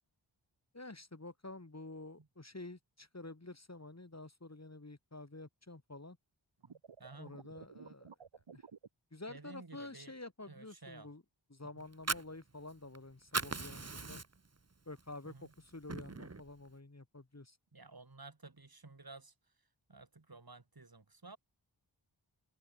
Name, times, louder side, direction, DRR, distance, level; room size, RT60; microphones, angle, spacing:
voice 1, 0.7-6.2 7.2-8.2 8.5-8.6 9.1-11.2 11.5-14.2 14.9-17.6, left 2 dB, 35° left, 4.6 m, -49 dB
sound 1, 6.6-8.9, right 6 dB, 80° right, 1.5 m, -53 dB
voice 2, 6.7-7.4 9.3-10.1 10.5-11.1 15.3-15.5 17.7-19.3 19.9-21.4, right 3 dB, 50° right, 5.3 m, -53 dB
Fire, 11.8-13.0 13.2-14.6 15.0-15.1 15.5-16.5, right 3 dB, 35° right, 1.5 m, -39 dB
wide cardioid pair, 55°, 46 cm